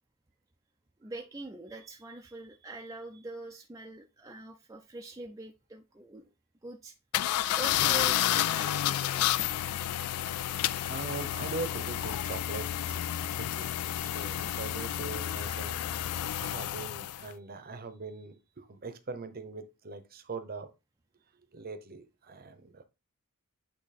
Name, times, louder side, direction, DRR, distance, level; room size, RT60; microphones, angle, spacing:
voice 1, 1.0-6.3 6.6-7.0 7.4-9.3 17.7-17.8, right 2 dB, 15° right, 0.5 m, -44 dB
sound 1, 7.1-17.3, left 12 dB, 75° left, 0.3 m, -30 dB
voice 2, 10.2-13.0 13.3-13.7 14.0-15.8 16.3-20.7 21.5-22.8, right 4 dB, 40° right, 0.8 m, -42 dB
8.5 x 2.9 x 4.2 m
head